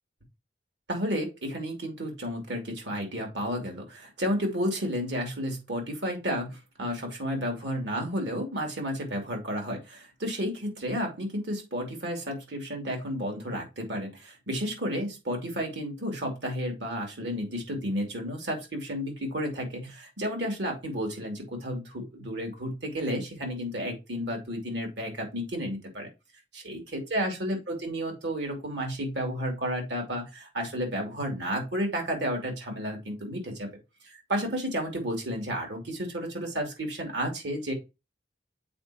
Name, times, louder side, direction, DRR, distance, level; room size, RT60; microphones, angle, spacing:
voice 1, 0.9-26.1 26.5-33.7 34.0-37.7, equal, 70° right, 3 dB, 2.6 m, -32 dB
7.7 x 4.5 x 2.8 m, 0.25 s
head